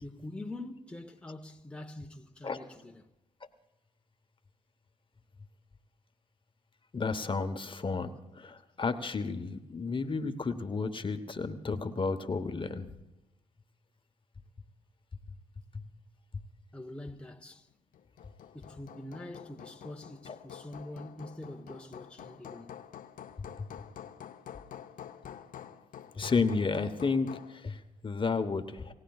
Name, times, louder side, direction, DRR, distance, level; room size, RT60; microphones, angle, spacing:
voice 1, 0.0-3.1 16.7-17.7 18.5-22.8, left 1 dB, 5° left, 1.0 m, -44 dB
voice 2, 6.9-8.1 8.3-12.9 23.6-23.7 26.1-28.9, left 4 dB, 30° left, 1.1 m, -32 dB
Hammer, 17.9-27.6, left 9 dB, 60° left, 0.8 m, -48 dB
28.5 x 16.5 x 2.4 m
hypercardioid pair, 50°, 16 cm